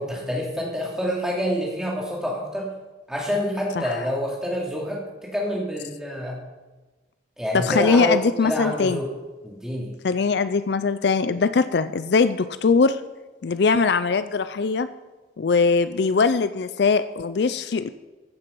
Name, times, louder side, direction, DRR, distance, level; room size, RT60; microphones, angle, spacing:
voice 1, 0.0-2.7 3.1-6.4 7.4-9.1 9.4-9.9, equal, 5° right, -4 dB, 2.7 m, -27 dB
voice 2, 7.5-9.0 10.0-13.0 13.4-14.9 15.4-17.9, left 4 dB, 65° left, 13 dB, 0.4 m, -21 dB
15.0 x 7.0 x 5.3 m, 1.2 s
head